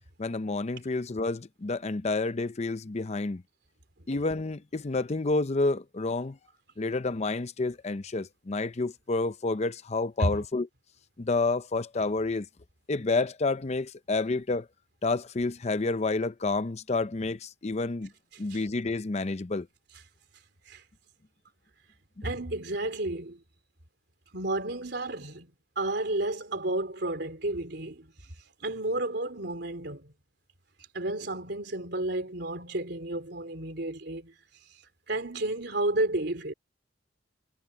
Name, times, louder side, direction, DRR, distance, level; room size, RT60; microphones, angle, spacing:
voice 1, 0.2-3.4 4.1-6.4 6.8-10.7 11.2-12.5 12.9-14.7 15.0-18.1 18.4-19.7, left 3 dB, 35° left, 0.6 m, -29 dB
voice 2, 22.2-23.4 24.3-25.5 25.8-28.1 28.6-30.1 30.9-34.3 35.1-36.5, right 2 dB, 65° right, 3.7 m, -31 dB
head